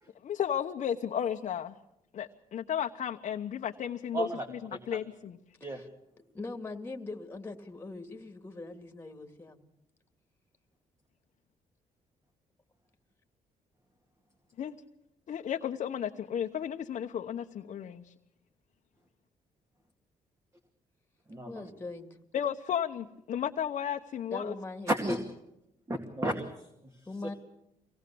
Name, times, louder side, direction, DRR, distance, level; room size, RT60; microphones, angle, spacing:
voice 1, 0.2-1.8 2.1-4.6 4.9-5.4 14.6-14.7 15.3-18.1 22.3-24.5, left 9 dB, 60° left, 2 dB, 1.0 m, -33 dB
voice 2, 4.1-4.8 5.6-5.8 21.3-21.7 24.9-25.2 25.9-27.1, right 1 dB, 20° right, 5 dB, 2.2 m, -33 dB
voice 3, 6.3-9.6 21.5-22.2 24.3-24.9 27.1-27.3, left 3 dB, 15° left, 5 dB, 2.3 m, -41 dB
24.5 x 18.0 x 6.9 m, 0.84 s
cardioid pair, 110°, 14 cm